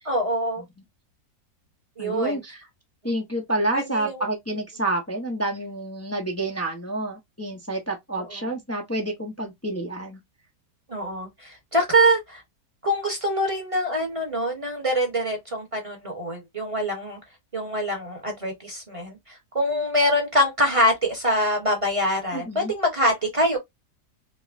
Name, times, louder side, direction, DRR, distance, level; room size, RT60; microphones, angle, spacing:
voice 1, 0.0-0.6 2.0-2.4 3.7-4.2 10.9-12.4 12.8-17.2 17.5-19.2 19.5-23.6, equal, 25° right, 0.9 m, -24 dB
voice 2, 2.0-2.6 3.0-10.2 22.3-22.7, right 1 dB, 25° left, 0.3 m, -29 dB
5.3 x 2.1 x 2.5 m
omnidirectional pair, 1.8 m